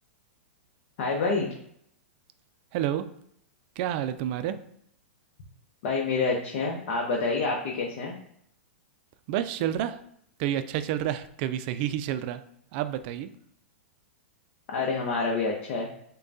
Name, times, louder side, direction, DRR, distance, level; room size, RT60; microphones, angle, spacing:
voice 1, 1.0-1.5 5.8-8.2 14.7-15.9, left 3 dB, 55° left, 0 dB, 0.8 m, -27 dB
voice 2, 2.7-3.1 3.8-4.6 9.3-10.0 10.4-12.4 12.7-13.3, right 11 dB, 45° right, 10 dB, 0.4 m, -29 dB
6.5 x 2.3 x 2.6 m, 0.69 s
hypercardioid pair, 115°, 7 cm